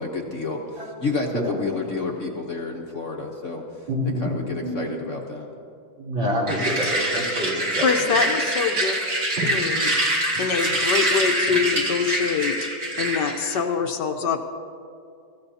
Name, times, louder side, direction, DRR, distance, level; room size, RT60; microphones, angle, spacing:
voice 1, 0.0-3.6 4.2-5.5, left 3 dB, 50° left, 0 dB, 1.1 m, -30 dB
voice 2, 3.9-4.9 6.0-8.0 9.4-9.5, equal, 70° right, -6 dB, 4.1 m, -27 dB
sound 1, 6.5-13.6, right 1 dB, 35° right, 2.2 m, -25 dB
voice 3, 7.8-8.9 9.4-9.9 10.4-12.5 13.0-14.4, left 6 dB, 70° left, 5 dB, 1.4 m, -24 dB
24.5 x 14.5 x 2.8 m, 2.5 s
omnidirectional pair, 2.1 m